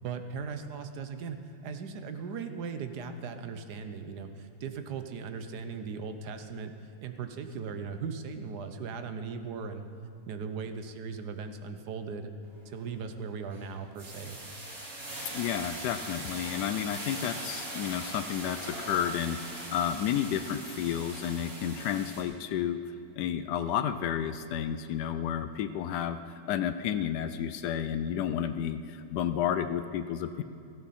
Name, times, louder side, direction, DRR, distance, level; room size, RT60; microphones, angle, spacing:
voice 1, 0.0-6.7 7.0-9.8 10.3-12.3 12.6-14.4, right 5 dB, 80° right, 8 dB, 1.5 m, -38 dB
sound 1, 12.5-12.8 13.2-22.2, right 1 dB, 60° right, 2.7 m, -41 dB
voice 2, 15.3-22.8 23.2-30.4, left 9 dB, 85° left, 10 dB, 1.2 m, -31 dB
17.0 x 14.0 x 4.2 m, 2.7 s
omnidirectional pair, 1.7 m